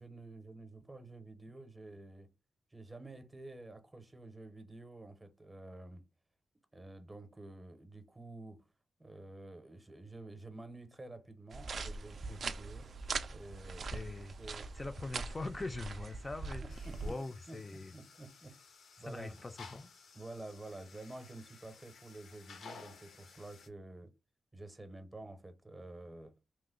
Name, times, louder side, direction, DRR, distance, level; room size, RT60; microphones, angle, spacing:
voice 1, 0.0-2.3 2.7-6.1 6.7-8.7 9.0-12.9 13.3-13.9 14.4-14.7 16.6-17.2 17.5-18.6 19.0-19.4 20.1-24.1 24.5-26.4, right 2 dB, 20° right, 0.6 m, -50 dB
sound 1, 11.5-17.1, right 4 dB, 65° right, 0.3 m, -42 dB
voice 2, 13.8-17.9 19.0-19.9, left 2 dB, 30° left, 0.3 m, -43 dB
sound 2, 16.7-23.7, left 5 dB, 85° left, 0.5 m, -56 dB
2.9 x 2.0 x 3.6 m
cardioid pair, 80°, 0 cm